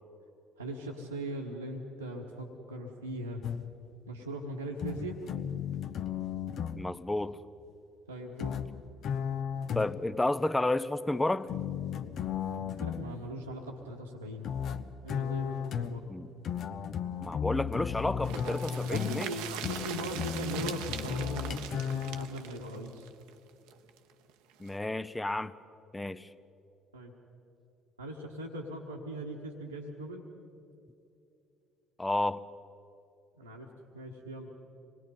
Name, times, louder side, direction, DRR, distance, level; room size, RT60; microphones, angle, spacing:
voice 1, 0.6-3.4 4.1-5.2 8.1-8.5 12.6-14.5 15.0-16.1 18.8-23.1 26.9-27.1 28.0-30.2 33.4-33.7 33.9-34.5, right 1 dB, 90° right, -6 dB, 1.4 m, -40 dB
sound 1, 3.4-3.9 4.8-6.9 8.4-10.2 11.5-13.1 14.4-22.3, left 8 dB, 50° left, 0.8 m, -35 dB
voice 2, 6.8-7.4 9.7-11.5 16.1-16.3 17.2-19.4 24.6-25.5 25.9-26.3 32.0-32.4, left 2 dB, 10° left, 15 dB, 0.7 m, -31 dB
sound 2, 18.2-24.0 24.3-24.4 24.7-24.8, right 10 dB, 65° right, 0.9 m, -41 dB
26.0 x 20.0 x 5.4 m, 2.8 s
figure-of-eight pair, 50°, 0 cm